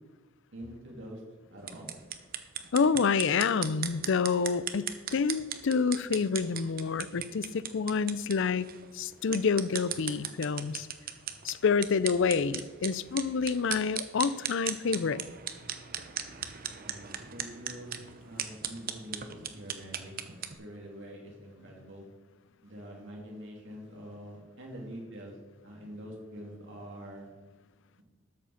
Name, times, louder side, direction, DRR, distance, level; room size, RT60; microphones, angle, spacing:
voice 1, 0.5-1.2 1.5-1.9 16.8-22.1 22.6-25.4 25.6-27.3, equal, 65° right, 0 dB, 3.1 m, -45 dB
sound 1, 1.6-20.5, right 9 dB, 45° right, 0.9 m, -38 dB
voice 2, 2.7-8.7 8.9-10.9 11.4-15.2, left 5 dB, 65° left, 17 dB, 0.5 m, -28 dB
13.0 x 7.5 x 5.8 m, 1.3 s
head